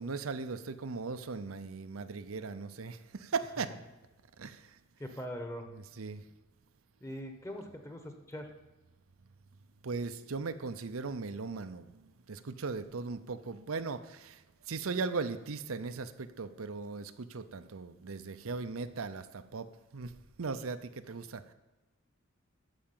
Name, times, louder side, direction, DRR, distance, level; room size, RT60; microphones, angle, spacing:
voice 1, 0.0-3.7 4.4-4.7 6.0-6.2 9.8-11.9 12.3-14.4 14.7-19.7 19.9-20.1 20.4-21.4, right 4 dB, 90° right, 10 dB, 0.7 m, -38 dB
voice 2, 5.0-5.7 7.0-8.5, equal, 15° left, 5 dB, 1.3 m, -41 dB
13.0 x 5.0 x 8.8 m, 1.1 s
head